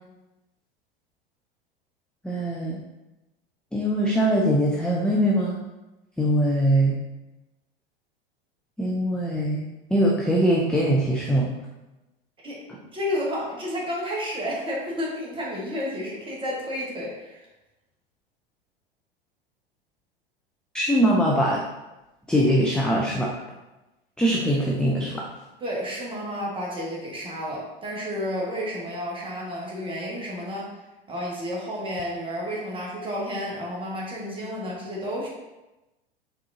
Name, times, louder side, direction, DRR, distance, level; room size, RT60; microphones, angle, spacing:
voice 1, 2.2-2.8 3.7-5.6 6.2-7.0 8.8-9.6 9.9-11.5 20.7-21.6 22.3-23.3 24.2-25.3, equal, 5° left, -3 dB, 0.4 m, -22 dB
voice 2, 12.9-17.4 25.6-30.6 31.1-35.3, equal, 15° right, -4 dB, 1.5 m, -31 dB
4.9 x 3.5 x 2.8 m, 1.0 s
figure-of-eight pair, 85°, 30 cm